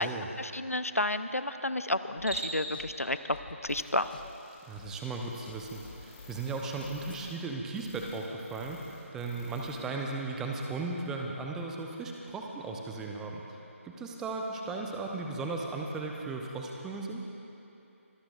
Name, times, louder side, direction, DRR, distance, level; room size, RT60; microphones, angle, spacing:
voice 1, 0.0-3.4 3.6-4.1, left 1 dB, 90° left, 12 dB, 0.6 m, -31 dB
Cricket, 2.1-2.8, right 1 dB, 65° right, 3.4 m, -37 dB
sound 1, 2.2-5.1 5.4-7.3, left 4 dB, 40° left, 0.6 m, -49 dB
sound 2, 3.7-9.8 10.1-10.2 10.7-10.8, left 3 dB, 20° left, 2.6 m, -54 dB
voice 2, 4.7-13.6 13.8-17.3, right 3 dB, 5° right, 1 dB, 0.7 m, -36 dB
25.5 x 17.5 x 2.5 m, 2.9 s
figure-of-eight pair, 150°, 8 cm